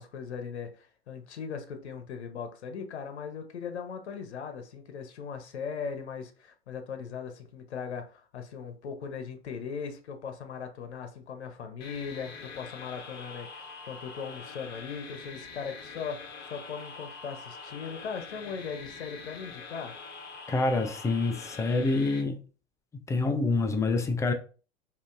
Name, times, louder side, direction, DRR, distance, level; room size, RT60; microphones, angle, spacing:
voice 1, 0.0-19.9, left 6 dB, 75° left, 0.8 m, -39 dB
sound 1, 11.8-22.2, left 4 dB, 30° left, 1.1 m, -44 dB
voice 2, 20.5-22.4 23.1-24.3, left 3 dB, 10° left, 0.4 m, -26 dB
5.0 x 2.6 x 2.4 m
figure-of-eight pair, 95°, 33 cm